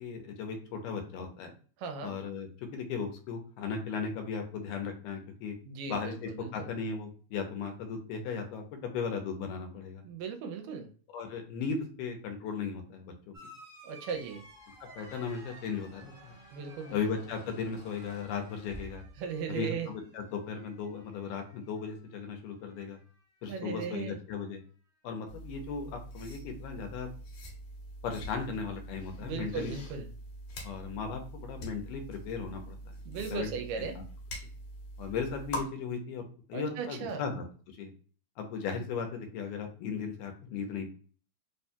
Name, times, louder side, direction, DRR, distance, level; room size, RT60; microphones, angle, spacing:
voice 1, 0.0-1.5 2.0-5.6 5.9-10.0 11.1-13.3 15.0-16.4 16.9-19.0 19.5-23.0 23.4-24.6 25.0-27.1 28.0-29.7 30.6-32.8 33.3-33.5 35.0-37.4 37.8-37.9 38.4-40.9, left 5 dB, 85° left, 4 dB, 2.2 m, -36 dB
voice 2, 1.8-2.1 5.7-6.7 10.0-10.9 13.8-14.5 16.5-17.0 19.2-19.9 23.5-24.2 29.2-30.1 33.1-34.0 36.5-37.2, right 6 dB, 80° right, 6 dB, 2.1 m, -37 dB
sound 1, 13.3-22.4 22.6-23.4 24.5-24.6, equal, 65° right, 0.7 m, -57 dB
Squeak, 14.1-19.6, equal, 40° left, 0.7 m, -53 dB
sound 2, 25.3-35.6, equal, 70° left, 2.1 m, -44 dB
5.0 x 2.6 x 2.2 m, 0.41 s
omnidirectional pair, 3.8 m